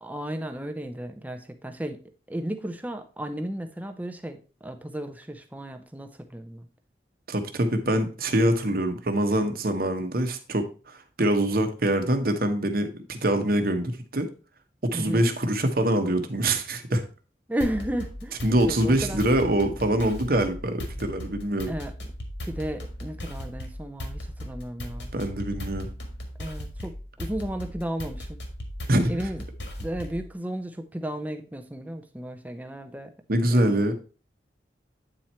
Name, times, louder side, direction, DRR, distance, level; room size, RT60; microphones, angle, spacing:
voice 1, 0.0-2.0 2.3-6.6 14.9-15.3 17.5-19.3 21.7-21.9 22.4-25.1 26.4-28.4 29.1-29.4 29.8-33.1 33.5-33.9, right 1 dB, 10° right, 7 dB, 0.7 m, -34 dB
voice 2, 7.3-14.3 14.9-17.0 18.4-21.7 25.1-25.9 28.9-29.2 33.3-33.9, right 1 dB, 50° right, 7 dB, 1.0 m, -24 dB
sound 1, 17.6-30.3, equal, 70° left, 1.7 m, -37 dB
8.9 x 4.5 x 4.3 m, 0.35 s
head